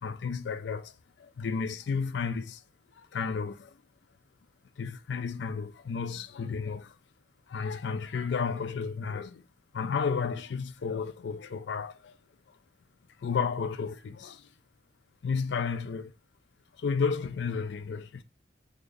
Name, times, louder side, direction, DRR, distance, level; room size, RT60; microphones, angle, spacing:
voice 1, 0.0-0.9 1.2-2.6 3.0-3.8 4.8-6.9 7.5-9.4 9.7-12.2 13.2-14.5 15.2-16.1 16.8-18.2, left 5 dB, 70° left, 0.4 m, -32 dB
3.7 x 2.5 x 3.2 m
head